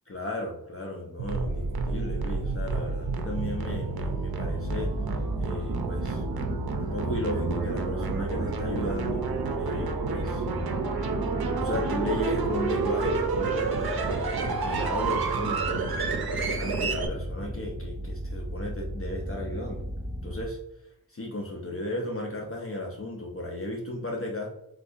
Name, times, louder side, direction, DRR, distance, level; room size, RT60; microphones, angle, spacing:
voice 1, 0.1-4.9 5.4-6.2 6.8-9.3 9.6-10.5 11.5-16.0 16.6-19.8 20.2-20.6 21.1-24.5, left 1 dB, 35° left, -1 dB, 0.6 m, -35 dB
sound 1, 1.2-20.5, equal, 15° right, 0.3 m, -35 dB
sound 2, 1.2-17.1, right 4 dB, 75° right, 0.6 m, -30 dB
3.6 x 2.7 x 2.4 m, 0.82 s
wide cardioid pair, 70°, 37 cm